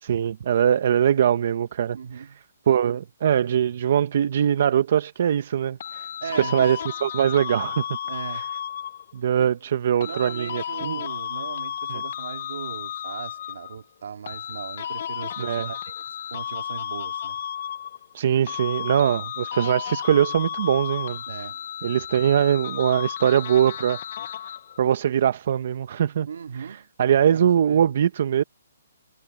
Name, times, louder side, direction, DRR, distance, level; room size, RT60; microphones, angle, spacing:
voice 1, 0.0-2.2 2.7-6.1 6.4-7.8 8.3-8.4 9.1-11.0 11.9-12.0 15.4-15.7 18.1-21.2 21.8-24.0 24.3-24.4 24.8-26.3 27.0-28.4, right 9 dB, 45° right, 0.9 m, -22 dB
voice 2, 1.9-2.4 6.2-6.7 8.1-8.5 9.4-9.5 10.0-17.4 21.3-21.6 26.3-26.9 27.3-27.9, right 6 dB, 65° right, 2.3 m, -38 dB
sound 1, 5.8-9.2 10.0-13.8 14.3-18.2 18.5-24.8, left 10 dB, 45° left, 0.4 m, -33 dB
hypercardioid pair, 165°, 0 cm